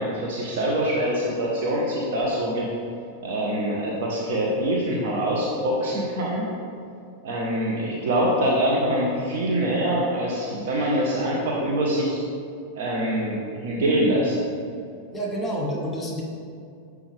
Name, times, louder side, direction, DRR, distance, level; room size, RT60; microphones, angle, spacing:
voice 1, 0.0-2.6 3.2-6.4 7.2-12.2 12.7-14.4, right 1 dB, 55° right, -3 dB, 0.8 m, -24 dB
voice 2, 15.1-16.2, equal, 20° left, -2 dB, 1.3 m, -28 dB
7.0 x 4.7 x 3.4 m, 2.4 s
figure-of-eight pair, 90°, 0 cm